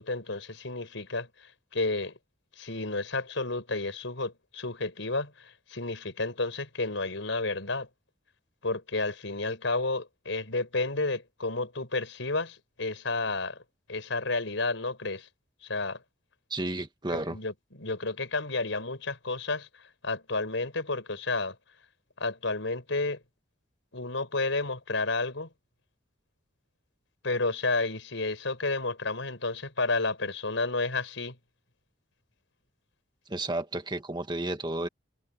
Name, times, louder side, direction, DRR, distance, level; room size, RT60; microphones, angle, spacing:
voice 1, 0.0-2.1 2.6-7.9 8.6-13.6 13.9-15.3 15.6-16.0 17.1-19.7 20.0-21.6 22.2-23.2 23.9-25.5 27.2-31.4, left 3 dB, 85° left, 4.7 m, -31 dB
voice 2, 16.5-17.4 33.3-34.9, right 2 dB, 25° right, 1.7 m, -32 dB
head